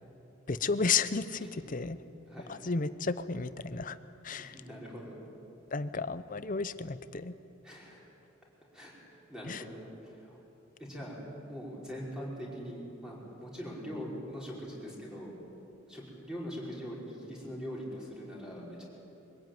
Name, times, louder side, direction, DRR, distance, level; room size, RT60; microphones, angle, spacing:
voice 1, 0.5-2.0 2.5-4.0 4.2-4.6 5.7-7.3 9.5-9.6, left 4 dB, 40° left, 13 dB, 0.7 m, -32 dB
voice 2, 4.4-5.2 7.6-8.0 8.7-10.4 10.8-15.3 15.9-18.8, equal, 5° right, -5 dB, 5.2 m, -42 dB
24.0 x 16.0 x 9.4 m, 2.9 s
head